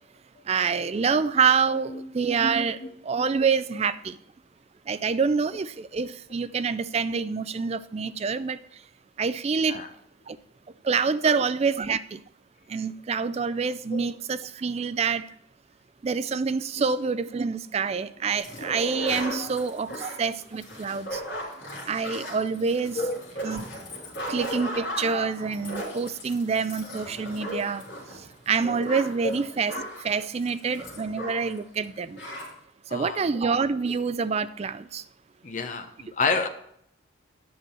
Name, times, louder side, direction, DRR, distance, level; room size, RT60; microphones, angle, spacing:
voice 1, 0.5-4.2 4.9-8.6 9.2-9.8 10.3-10.4 10.8-12.2 12.7-15.3 16.0-21.2 21.9-23.0 23.4-23.6 24.3-27.8 28.5-32.2 32.9-35.0, right 5 dB, 30° right, 0.3 m, -26 dB
sound 1, 18.4-31.6 31.8-31.9 32.1-32.5, equal, 55° left, 3.8 m, -36 dB
voice 2, 32.9-33.3 35.4-36.5, left 4 dB, 35° left, 0.8 m, -29 dB
9.3 x 6.1 x 5.6 m
head